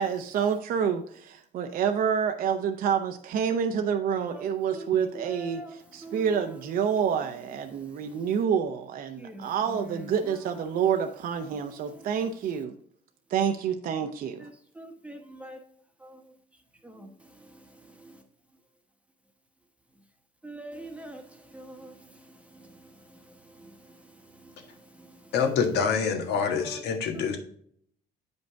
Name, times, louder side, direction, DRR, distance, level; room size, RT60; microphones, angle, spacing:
voice 1, 0.0-12.7 13.3-14.5, right 7 dB, 55° right, 0.7 m, -28 dB
voice 2, 5.1-6.6 7.0-7.3 9.2-10.4 11.9-12.0 14.4-15.6 16.0-16.2 16.8-18.2 20.4-25.3 26.5-26.8 27.1-27.3, right 2 dB, 5° right, 1.0 m, -45 dB
voice 3, 25.3-27.4, left 6 dB, 80° left, 1.5 m, -26 dB
8.2 x 5.3 x 3.4 m
cardioid pair, 110°, 17 cm